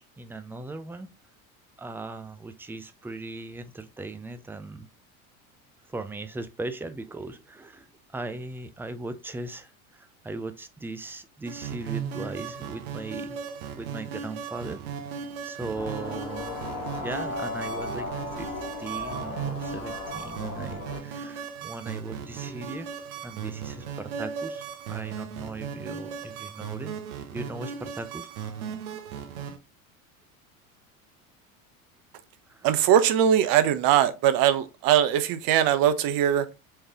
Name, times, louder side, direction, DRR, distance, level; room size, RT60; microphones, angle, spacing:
voice 1, 0.2-1.1 1.8-4.9 5.9-13.4 13.7-14.8 15.4-16.6 16.9-18.5 18.8-26.9 27.3-28.3 32.5-32.7, right 2 dB, 5° right, 0.4 m, -38 dB
sound 1, 11.5-29.6, right 7 dB, 75° right, 1.0 m, -37 dB
sound 2, 15.7-21.0, left 3 dB, 60° left, 2.2 m, -36 dB
voice 2, 32.6-36.4, right 10 dB, 50° right, 0.8 m, -21 dB
4.5 x 3.2 x 3.5 m
hypercardioid pair, 80°, 43 cm